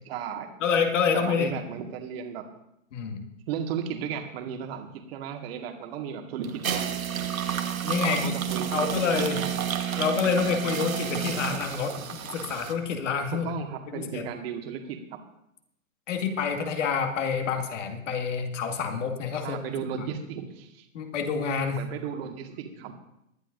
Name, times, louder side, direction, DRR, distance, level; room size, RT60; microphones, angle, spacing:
voice 1, 0.1-0.5 1.1-2.6 3.5-6.9 8.0-9.5 13.3-15.0 19.4-20.9 21.7-22.9, right 7 dB, 45° right, 4 dB, 1.8 m, -35 dB
voice 2, 0.6-1.5 2.9-3.2 7.8-8.3 8.7-9.4 10.0-13.5 13.9-14.3 16.1-19.6 20.9-21.8, left 6 dB, 65° left, 4 dB, 2.2 m, -27 dB
sound 1, 6.4-12.7, right 9 dB, 85° right, 1.4 m, -30 dB
20.5 x 11.5 x 2.6 m, 0.79 s
hypercardioid pair, 125°, 40 cm